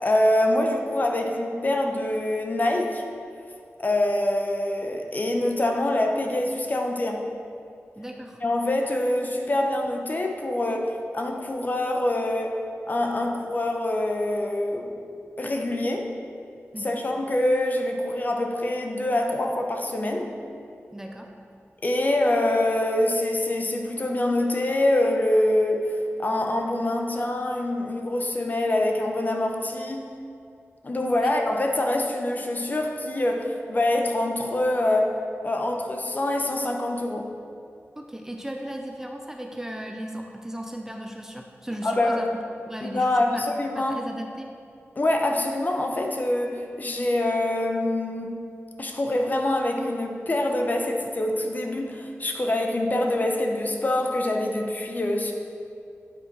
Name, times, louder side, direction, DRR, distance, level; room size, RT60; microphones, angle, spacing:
voice 1, 0.0-3.0 3.8-7.3 8.4-12.6 12.9-14.9 15.4-16.1 16.8-20.4 21.8-30.2 30.8-35.2 35.4-37.4 41.8-42.2 42.8-44.0 45.0-48.4 48.8-55.3, left 1 dB, 35° left, 2 dB, 0.7 m, -25 dB
voice 2, 8.0-8.4 16.7-17.0 20.9-21.3 31.2-31.3 38.0-43.5 43.7-44.5, right 1 dB, 10° right, 2 dB, 0.5 m, -36 dB
9.0 x 4.9 x 4.2 m, 2.4 s
wide cardioid pair, 115°, 5 cm